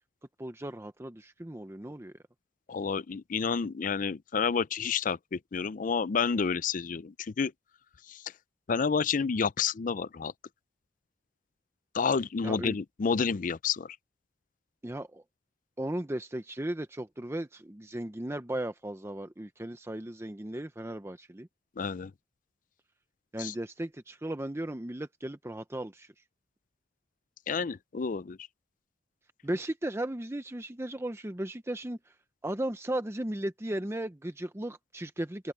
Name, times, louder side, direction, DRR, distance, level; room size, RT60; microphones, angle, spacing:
voice 1, 0.4-2.1 12.4-12.8 14.8-15.2 15.8-21.5 23.3-26.1 29.4-32.0 32.4-35.5, right 1 dB, 15° right, 0.7 m, -36 dB
voice 2, 2.7-7.5 8.1-8.2 8.7-10.3 11.9-14.0 21.8-22.1 23.4-23.5 27.5-28.4, left 5 dB, 45° left, 0.4 m, -30 dB
open air
head